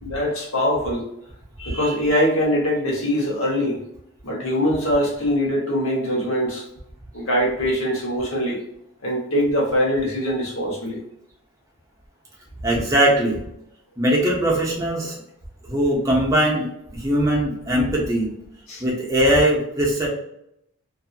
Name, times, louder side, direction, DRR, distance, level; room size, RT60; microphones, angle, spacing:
voice 1, 0.0-1.1 1.6-3.8 4.2-6.6 7.1-8.6 9.0-11.0 18.7-18.8, equal, 80° left, -3 dB, 1.1 m, -22 dB
voice 2, 12.6-13.4 14.0-15.2 15.7-16.7 16.9-18.3 18.8-20.1, right 1 dB, 15° right, -4 dB, 0.8 m, -20 dB
2.6 x 2.6 x 2.4 m, 0.77 s
head